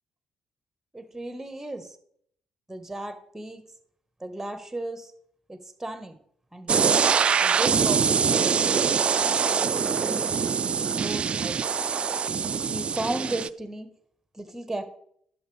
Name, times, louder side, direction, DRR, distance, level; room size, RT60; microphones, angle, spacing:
voice 1, 0.9-1.9 2.7-3.6 4.2-5.1 5.5-6.2 6.5-6.9 7.4-10.4 10.9-11.6 12.7-13.9 14.3-14.8, right 2 dB, 10° right, 9 dB, 1.3 m, -35 dB
sound 1, 6.7-13.5, right 6 dB, 45° right, 0.3 m, -24 dB
11.0 x 6.9 x 3.3 m, 0.66 s
hypercardioid pair, 45°, 3 cm